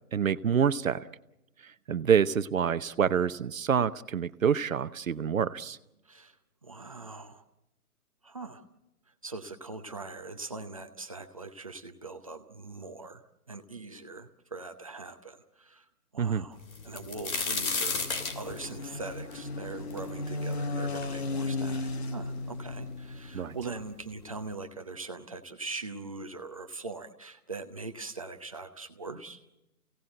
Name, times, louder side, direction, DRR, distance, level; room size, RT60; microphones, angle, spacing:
voice 1, 0.1-1.1 1.6-5.8 16.2-16.5 23.3-23.5, right 7 dB, 60° right, 13 dB, 0.8 m, -27 dB
voice 2, 6.0-6.4 6.6-7.4 8.2-8.6 9.1-13.2 13.5-16.6 16.8-29.4, right 3 dB, 25° right, 7 dB, 0.8 m, -42 dB
sound 1, 16.3-23.9, left 3 dB, 45° left, 1.3 m, -36 dB
sound 2, 16.7-20.5 21.0-21.1 21.9-22.0 22.2-22.9 23.8-23.9 24.3-24.5, left 4 dB, 65° left, 3.1 m, -33 dB
29.0 x 17.5 x 7.7 m, 0.95 s
hypercardioid pair, 170°, 45 cm